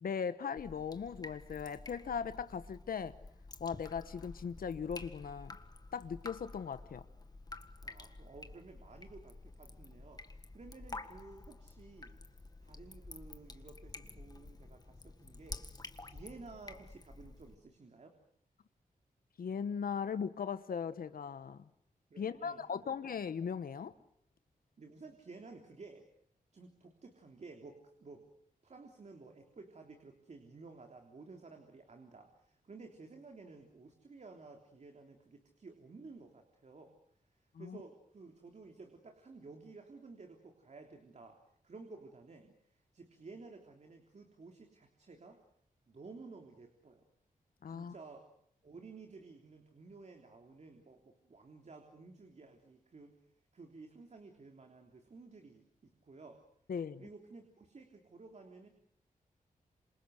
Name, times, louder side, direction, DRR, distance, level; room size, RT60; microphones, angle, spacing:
voice 1, 0.0-3.1 3.6-5.6 5.9-7.0 19.4-21.7 22.2-23.9 37.5-37.8 47.6-47.9 56.7-57.0, left 6 dB, 80° left, 1.1 m, -38 dB
Drip, 0.6-17.6, left 2 dB, 25° left, 1.8 m, -50 dB
voice 2, 7.8-15.7 16.0-18.2 22.1-22.9 24.8-26.1 26.5-28.3 28.6-37.0 37.2-45.4 45.9-47.1 47.7-48.3 48.6-53.1 53.5-56.4 57.0-58.7, right 3 dB, 50° right, 3.3 m, -54 dB
27.5 x 27.0 x 6.5 m
wide cardioid pair, 105°, 15 cm